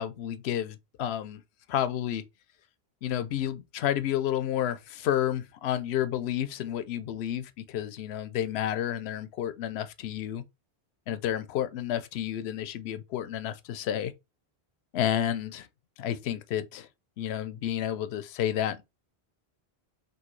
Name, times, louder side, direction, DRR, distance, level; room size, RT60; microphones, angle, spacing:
voice 1, 0.0-1.4 1.7-2.2 3.0-10.4 11.1-14.1 14.9-15.7 16.0-16.9 17.2-18.8, left 11 dB, 75° left, 0.8 m, -30 dB
6.1 x 2.7 x 3.1 m
omnidirectional pair, 1.1 m